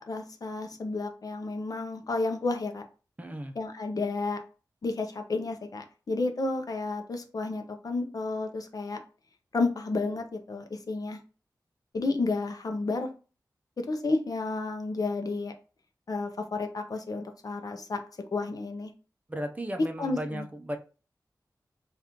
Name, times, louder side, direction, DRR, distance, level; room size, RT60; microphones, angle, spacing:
voice 1, 0.0-2.9 3.6-4.4 4.8-9.0 9.5-11.2 11.9-13.1 13.8-15.5 16.1-18.9 20.0-20.5, left 3 dB, 60° left, 6 dB, 0.5 m, -31 dB
voice 2, 3.2-3.5 19.3-20.8, equal, 20° right, 5 dB, 0.5 m, -35 dB
2.9 x 2.4 x 3.5 m, 0.35 s
wide cardioid pair, 70°, 7 cm